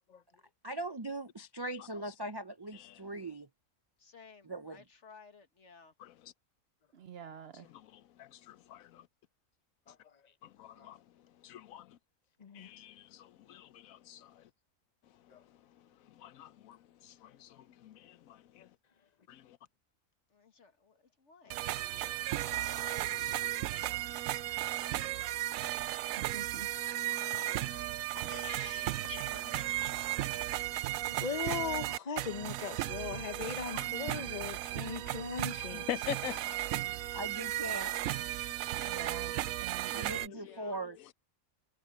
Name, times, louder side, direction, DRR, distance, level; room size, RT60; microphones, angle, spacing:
voice 1, 0.6-3.5 4.5-4.8 37.1-38.2 39.9-41.0, right 1 dB, 35° right, 0.4 m, -40 dB
voice 2, 4.0-5.9 20.3-21.7 22.3-23.7 24.2-25.2 26.7-28.8 30.2-30.9 39.8-40.8, left 5 dB, 60° left, 2.0 m, -61 dB
voice 3, 6.0-6.3 7.5-9.1 10.4-12.0 12.5-14.5 15.1-18.7 19.3-19.6 22.8-23.5 23.9-24.1 27.0-27.6 28.1-30.2 33.7-33.9 35.6-36.6 40.1-40.8, left 11 dB, 85° left, 1.1 m, -46 dB
voice 4, 6.9-7.7 26.2-26.7 38.7-39.9, right 8 dB, 60° right, 0.8 m, -47 dB
voice 5, 12.4-12.7 15.3-15.4 31.1-35.9 38.9-39.0, left 6 dB, 35° left, 0.8 m, -39 dB
sound 1, 21.5-40.3, right 14 dB, 80° right, 1.0 m, -35 dB
omnidirectional pair, 1.4 m